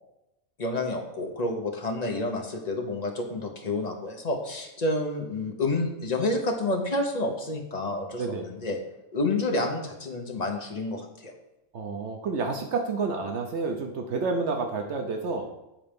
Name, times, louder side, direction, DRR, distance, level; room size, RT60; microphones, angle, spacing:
voice 1, 0.6-8.2 8.6-8.8 9.1-11.3, left 2 dB, 35° left, 2 dB, 1.1 m, -29 dB
voice 2, 11.7-15.5, right 4 dB, 70° right, 4 dB, 1.0 m, -29 dB
8.7 x 4.3 x 5.2 m, 0.93 s
omnidirectional pair, 1.2 m